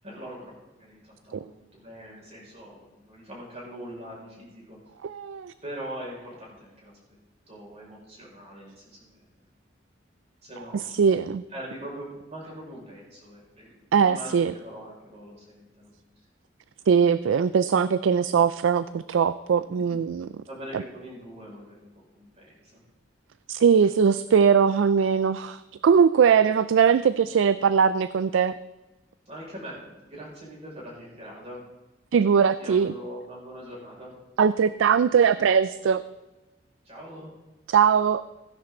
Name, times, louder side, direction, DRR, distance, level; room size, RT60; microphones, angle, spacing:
voice 1, 0.0-4.8 5.6-6.9 7.5-9.2 10.4-11.0 11.5-15.9 19.8-20.0 20.4-22.8 29.3-31.6 32.6-34.1 36.8-37.3, equal, 35° right, -4 dB, 5.5 m, -42 dB
voice 2, 5.0-5.5 10.9-11.4 13.9-14.5 16.9-20.3 20.7-20.8 23.5-28.5 32.1-32.9 34.4-36.0 37.7-38.2, right 6 dB, 85° right, 15 dB, 0.4 m, -21 dB
16.0 x 10.5 x 3.9 m, 1.1 s
head